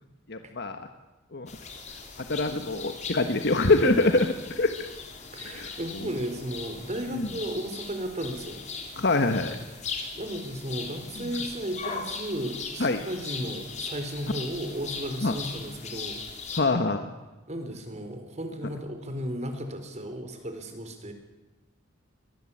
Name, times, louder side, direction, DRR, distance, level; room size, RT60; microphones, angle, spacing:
voice 1, 0.3-0.9 1.3-1.5 2.3-4.3 4.6-4.7 5.5-5.7 6.0-6.1 7.1-7.3 9.0-9.6 12.8-13.0 15.2-15.3 16.5-17.1, left 2 dB, 60° left, 7 dB, 1.4 m, -24 dB
sound 1, 1.5-16.6, left 4 dB, 40° left, 3.5 m, -39 dB
voice 2, 3.8-4.3 5.3-8.7 10.1-16.2 17.5-21.1, equal, 35° right, 6 dB, 4.0 m, -34 dB
24.0 x 18.5 x 8.6 m, 1.1 s
head